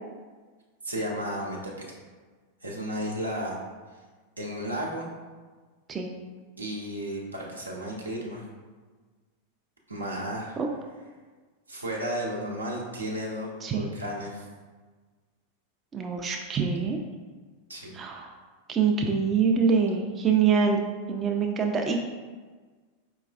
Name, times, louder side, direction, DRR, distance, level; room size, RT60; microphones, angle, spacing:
voice 1, 0.8-1.9 2.6-3.6 4.4-5.1 6.6-8.4 9.9-10.6 11.7-14.5 17.7-17.9, equal, 80° right, -2 dB, 0.7 m, -33 dB
voice 2, 15.9-17.0 17.9-18.3 18.7-20.8 21.1-22.0, right 5 dB, 20° right, 1 dB, 0.4 m, -25 dB
4.6 x 3.0 x 2.4 m, 1.4 s
figure-of-eight pair, 90°, 0 cm